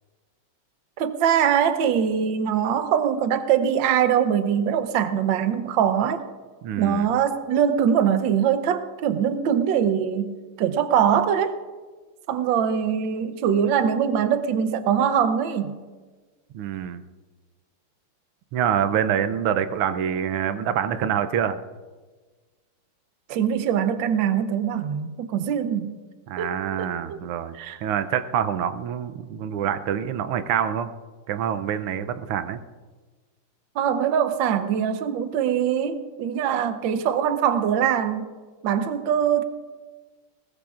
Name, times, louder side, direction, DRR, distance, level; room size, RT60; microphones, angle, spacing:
voice 1, 1.0-6.2 6.8-11.6 12.3-15.8 23.3-26.0 26.4-26.5 26.8-27.2 27.5-27.8 33.7-38.3 38.6-39.4, right 8 dB, 65° right, 9 dB, 1.5 m, -22 dB
voice 2, 6.6-7.1 16.5-17.0 18.5-21.6 26.3-27.6 27.8-30.9 31.3-32.6, right 9 dB, 85° right, 11 dB, 1.6 m, -26 dB
21.0 x 19.5 x 2.5 m, 1.4 s
omnidirectional pair, 2.4 m